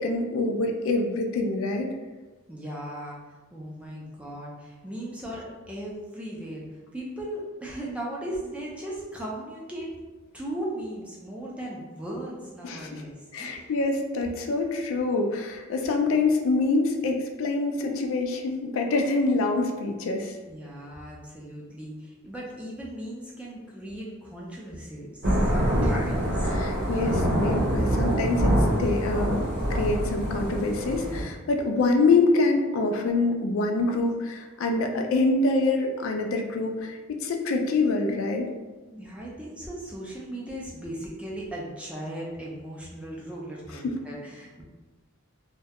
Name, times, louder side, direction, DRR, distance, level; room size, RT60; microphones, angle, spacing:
voice 1, 0.0-1.9 12.6-13.0 13.3-20.4 25.8-26.0 26.6-38.5 43.8-44.0, left 3 dB, 70° left, 3 dB, 0.3 m, -25 dB
voice 2, 2.5-3.2 3.5-6.6 6.9-9.9 10.3-13.8 20.5-26.5 38.9-44.6, right 1 dB, 5° right, -4 dB, 0.3 m, -37 dB
Thunder / Rain, 25.2-31.2, equal, 50° right, 0.7 m, -25 dB
2.3 x 2.1 x 2.7 m, 1.3 s
head